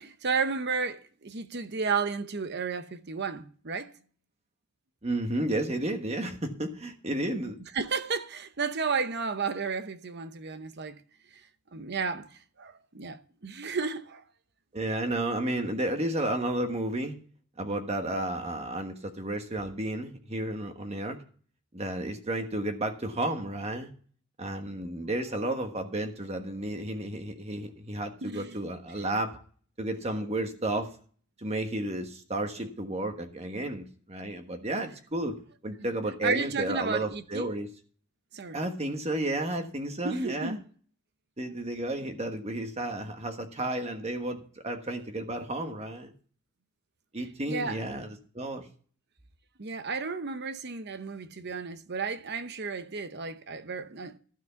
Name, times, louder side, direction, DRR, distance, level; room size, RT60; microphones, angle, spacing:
voice 1, 0.0-3.9 7.7-11.0 11.7-14.2 15.1-15.2 28.2-28.6 36.2-37.6 38.3-38.6 40.0-40.6 47.5-47.8 49.6-54.2, right 5 dB, 50° right, 0.8 m, -33 dB
voice 2, 5.0-7.6 14.7-17.1 17.6-21.2 21.7-23.9 24.4-29.4 29.8-30.9 31.4-35.4 35.6-37.7 38.5-40.6 41.4-46.1 47.1-48.7, right 1 dB, 30° right, 1.3 m, -32 dB
13.0 x 6.2 x 7.0 m
head